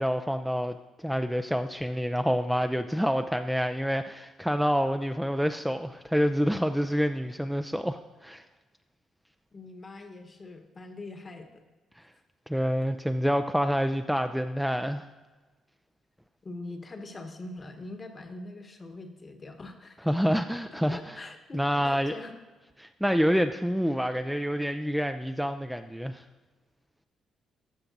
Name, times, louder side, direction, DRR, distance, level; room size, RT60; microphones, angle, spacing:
voice 1, 0.0-8.4 12.5-15.1 20.1-21.2 21.5-22.1 22.8-26.2, equal, ahead, 7 dB, 0.3 m, -27 dB
voice 2, 9.5-11.6 16.4-20.1 20.9-22.3, left 2 dB, 35° left, 6 dB, 1.1 m, -43 dB
13.0 x 5.7 x 2.6 m, 1.3 s
supercardioid pair, 60°, 0 cm